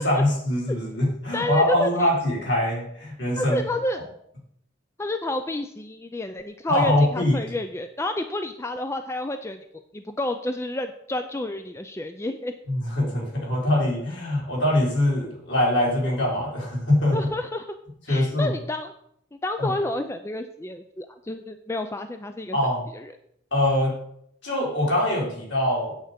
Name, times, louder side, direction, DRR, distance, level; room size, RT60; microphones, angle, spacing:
voice 1, 0.0-3.6 6.7-7.3 12.7-17.2 18.1-18.5 19.6-19.7 22.5-22.8 23.5-23.9 24.4-25.9, left 1 dB, 60° left, -3 dB, 4.1 m, -23 dB
voice 2, 1.3-2.1 3.4-4.0 5.0-12.5 17.1-17.7 18.1-18.9 19.4-22.6 22.9-23.1, left 1 dB, 15° left, 8 dB, 0.4 m, -30 dB
8.8 x 7.9 x 5.2 m, 0.71 s
head